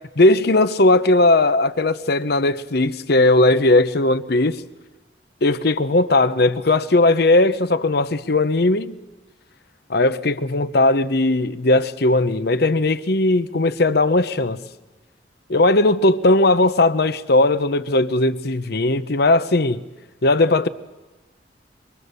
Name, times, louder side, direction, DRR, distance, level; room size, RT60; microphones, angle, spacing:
voice 1, 0.2-4.6 5.4-9.0 9.9-14.6 15.5-19.8 20.2-20.7, left 2 dB, 60° left, 0.9 m, -18 dB
25.0 x 22.5 x 6.8 m
head